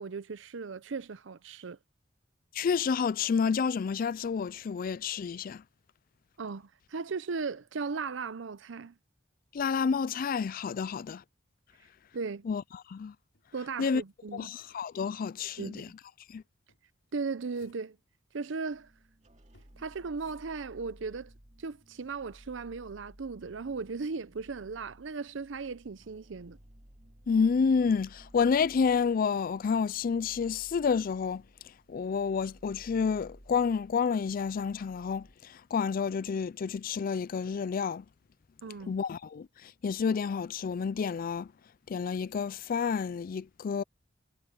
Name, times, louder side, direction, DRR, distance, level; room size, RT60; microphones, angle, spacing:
voice 1, 0.0-1.8 6.4-9.0 12.1-12.5 13.5-14.6 15.6-15.9 17.1-18.0 18.3-18.9 19.8-21.3 21.6-26.6 38.6-38.9, right 4 dB, 75° right, 0.6 m, -37 dB
voice 2, 2.5-5.6 9.5-11.2 12.5-12.6 12.9-13.1 13.8-14.0 14.3-15.9 16.3-16.4 27.3-31.4 31.9-38.0 38.9-41.5 41.9-43.8, left 6 dB, 50° left, 0.4 m, -29 dB
sound 1, 13.3-15.0 16.7-18.0 19.5-20.8 22.3-22.5, left 3 dB, 80° left, 5.1 m, -67 dB
sound 2, 18.7-35.3 35.8-35.9 36.3-36.4, equal, 40° right, 2.5 m, -57 dB
head